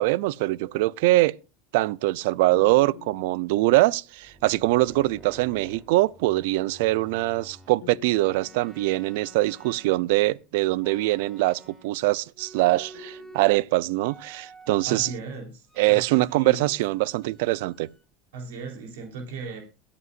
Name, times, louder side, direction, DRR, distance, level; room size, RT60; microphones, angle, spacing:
voice 1, 0.0-1.4 1.7-15.1 15.8-17.9, right 19 dB, 75° right, 0.5 m, -23 dB
sound 1, 2.5-4.2 7.8-9.6 12.9-14.5 16.4-17.6, left 12 dB, 90° left, 1.8 m, -49 dB
sound 2, 4.2-7.7 8.2-10.3 10.8-12.0 12.3-13.6 14.0-15.2 15.7-16.6 16.9-18.0, right 2 dB, 5° right, 2.3 m, -50 dB
voice 2, 14.9-16.7 18.3-19.6, right 4 dB, 90° right, 3.6 m, -36 dB
22.5 x 8.4 x 2.5 m
supercardioid pair, 130°, 0 cm